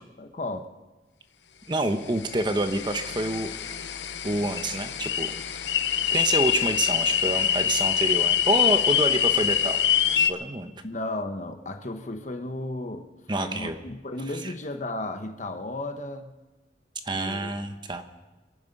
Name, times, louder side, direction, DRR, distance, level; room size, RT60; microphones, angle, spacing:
voice 1, 0.2-0.7 10.8-13.1 13.4-16.3 17.1-17.5, left 2 dB, 45° left, 7 dB, 1.1 m, -34 dB
voice 2, 1.7-3.5 4.2-5.3 6.1-9.8 10.3-10.7 13.3-13.8 14.4-14.5 17.1-18.0, right 2 dB, 25° right, 7 dB, 1.0 m, -27 dB
sound 1, 2.2-10.3, left 10 dB, 80° left, 0.8 m, -25 dB
26.5 x 9.3 x 5.4 m, 1.2 s
head